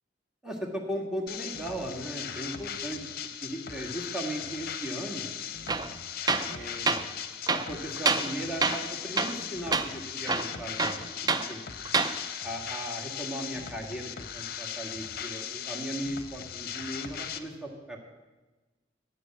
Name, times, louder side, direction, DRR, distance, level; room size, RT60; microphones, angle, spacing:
voice 1, 0.4-3.0 3.4-5.3 6.5-7.1 7.5-11.7 12.4-18.0, right 1 dB, 5° right, -1 dB, 1.8 m, -37 dB
sound 1, 1.3-17.4, left 8 dB, 55° left, 0.8 m, -38 dB
Tools, 5.7-5.9 6.3-6.5 6.9-7.0 7.5-8.3 8.6-8.9 9.2-9.4 9.7-9.9 10.3-11.5 11.9-12.1, right 4 dB, 20° right, 0.5 m, -27 dB
11.0 x 8.3 x 7.5 m, 1.2 s
head